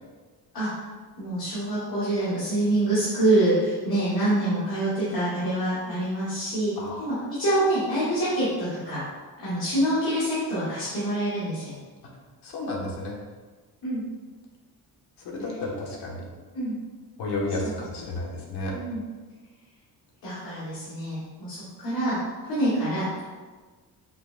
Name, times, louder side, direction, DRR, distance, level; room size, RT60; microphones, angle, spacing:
voice 1, 1.2-6.7 7.0-9.0 9.4-11.7 13.8-14.0 16.5-16.7 18.7-19.0 20.2-22.2 22.4-23.3, right 1 dB, 65° left, -11 dB, 1.3 m, -26 dB
voice 2, 12.4-13.2 15.2-16.2 17.2-18.7, left 2 dB, 85° left, -2 dB, 0.9 m, -32 dB
5.5 x 2.1 x 2.4 m, 1.4 s
cardioid pair, 125°, 39 cm